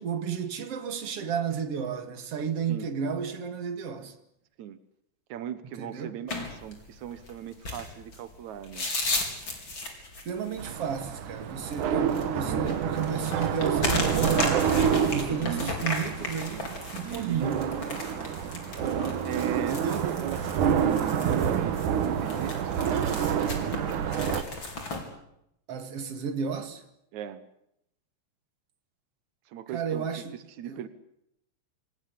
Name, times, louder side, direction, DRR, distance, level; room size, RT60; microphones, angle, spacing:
voice 1, 0.0-4.1 5.8-6.1 10.3-17.6 19.7-20.0 25.7-26.8 29.7-30.4 30.7-30.8, right 7 dB, 45° right, 2.5 m, -32 dB
voice 2, 5.3-8.9 12.4-12.7 15.2-15.7 17.0-17.7 18.8-23.4 27.1-27.4 29.5-30.2 30.6-30.9, right 10 dB, 85° right, 1.6 m, -38 dB
sound 1, 6.3-25.0, left 2 dB, 25° left, 5.0 m, -35 dB
sound 2, 10.6-24.4, right 8 dB, 60° right, 2.4 m, -28 dB
27.0 x 20.0 x 8.7 m
omnidirectional pair, 5.1 m